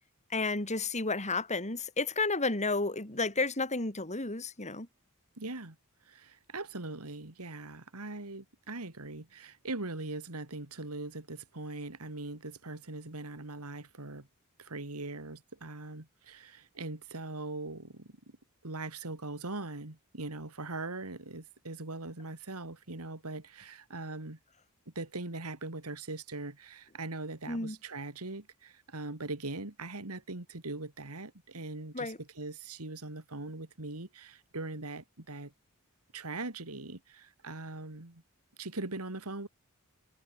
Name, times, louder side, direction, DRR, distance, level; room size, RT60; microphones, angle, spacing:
voice 1, 0.3-4.9 27.5-27.8 31.9-32.2, left 3 dB, 30° left, 4.4 m, -32 dB
voice 2, 5.4-5.8 6.0-14.3 14.6-18.4 18.6-24.4 24.9-35.5 36.1-38.2 38.6-39.5, right 2 dB, 80° right, 2.8 m, -41 dB
head